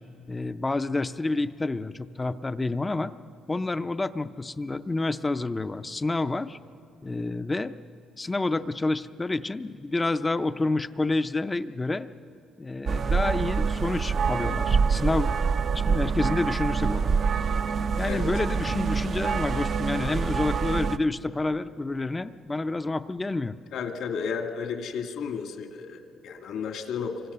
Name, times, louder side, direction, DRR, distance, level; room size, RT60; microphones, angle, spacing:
voice 1, 0.3-3.1 3.5-6.6 7.0-7.7 8.2-12.1 12.6-15.3 15.7-17.2 18.0-23.5, left 2 dB, 15° left, 12 dB, 0.5 m, -29 dB
sound 1, 12.9-21.0, right 5 dB, 35° right, 0.5 m, -26 dB
voice 2, 23.7-27.2, left 6 dB, 70° left, 5 dB, 2.1 m, -33 dB
27.5 x 24.5 x 6.8 m, 2.6 s
cardioid pair, 175°, 0 cm